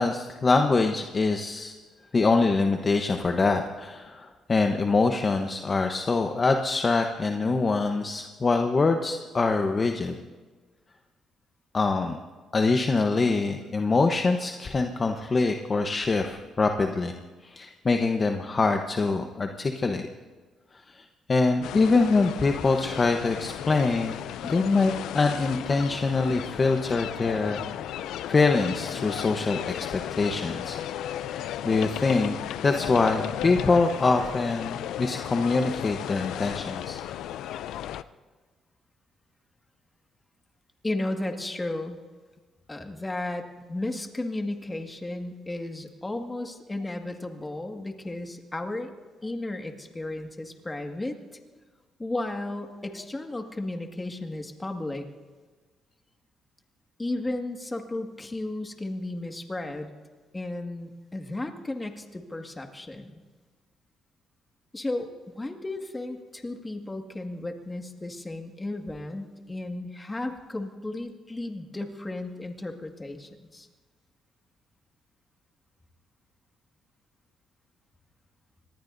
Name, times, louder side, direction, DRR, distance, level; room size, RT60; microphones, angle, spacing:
voice 1, 0.0-1.7 2.1-10.2 11.7-12.2 12.5-17.1 17.4-20.1 20.7-27.6 28.3-30.8 31.3-32.3 32.6-37.0, left 3 dB, 35° left, 4 dB, 1.0 m, -24 dB
sound 1, 21.6-38.0, left 11 dB, 85° left, 0.5 m, -35 dB
voice 2, 40.8-42.0 42.7-48.9 49.2-51.2 52.0-55.0 57.0-59.9 60.3-63.2 64.7-73.7, left 2 dB, 20° left, 4 dB, 1.9 m, -34 dB
25.5 x 19.5 x 2.7 m, 1.4 s
cardioid pair, 90°, 0 cm